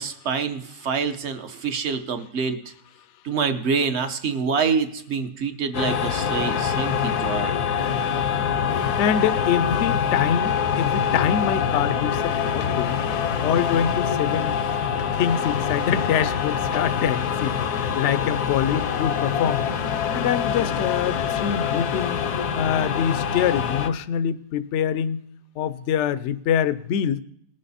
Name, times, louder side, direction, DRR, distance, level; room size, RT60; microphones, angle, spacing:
voice 1, 0.0-2.6 3.2-7.6, right 5 dB, 50° right, 9 dB, 1.0 m, -26 dB
sound 1, 5.7-23.9, left 7 dB, 85° left, 1.3 m, -25 dB
voice 2, 9.0-13.0 13.4-14.6 15.1-19.6 20.1-22.2 22.5-25.2 25.6-27.2, left 8 dB, 65° left, 15 dB, 0.7 m, -25 dB
19.5 x 6.6 x 4.1 m, 0.69 s
omnidirectional pair, 1.6 m